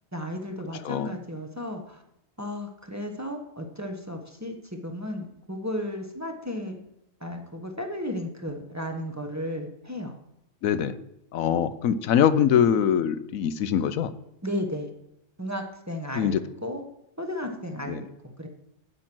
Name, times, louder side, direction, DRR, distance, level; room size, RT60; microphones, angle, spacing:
voice 1, 0.1-2.0 2.4-6.8 7.2-10.1 11.5-11.6 14.4-14.9 15.4-16.8 17.2-18.1 18.4-18.5, left 1 dB, 15° right, 3 dB, 1.1 m, -34 dB
voice 2, 10.6-11.0 11.3-14.1 16.1-16.4 17.9-18.0, left 8 dB, 85° left, 13 dB, 1.1 m, -23 dB
8.9 x 8.2 x 6.1 m, 0.82 s
omnidirectional pair, 1.4 m